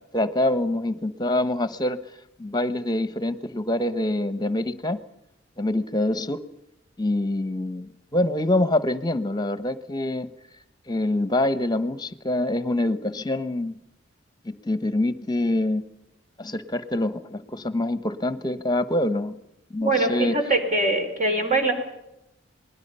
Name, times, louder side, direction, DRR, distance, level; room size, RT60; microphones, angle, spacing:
voice 1, 0.1-2.0 2.4-5.0 5.6-6.4 7.0-10.3 10.9-13.7 14.4-15.8 16.4-19.4 19.7-20.4, left 1 dB, 20° left, 12 dB, 1.1 m, -25 dB
voice 2, 19.8-21.7, right 2 dB, 40° right, 5 dB, 4.0 m, -22 dB
27.5 x 20.5 x 5.6 m, 0.85 s
head